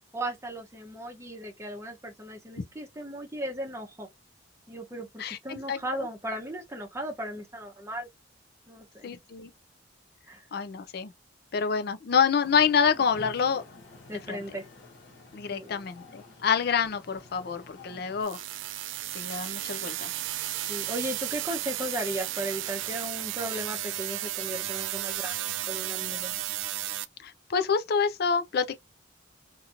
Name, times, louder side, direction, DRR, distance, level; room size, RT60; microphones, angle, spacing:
voice 1, 0.1-4.1 4.7-8.1 8.7-9.1 10.3-10.4 14.1-14.6 15.5-15.7 20.7-26.4, right 1 dB, 15° right, 0.7 m, -36 dB
voice 2, 5.2-6.1 9.0-9.5 10.5-11.1 11.5-13.6 14.1-14.4 15.3-18.4 19.1-20.1 27.2-28.8, left 6 dB, 55° left, 0.4 m, -27 dB
sound 1, 12.4-18.2, left 2 dB, 70° left, 1.2 m, -49 dB
sound 2, 18.2-27.1, right 14 dB, 75° right, 0.3 m, -33 dB
2.9 x 2.6 x 2.5 m
head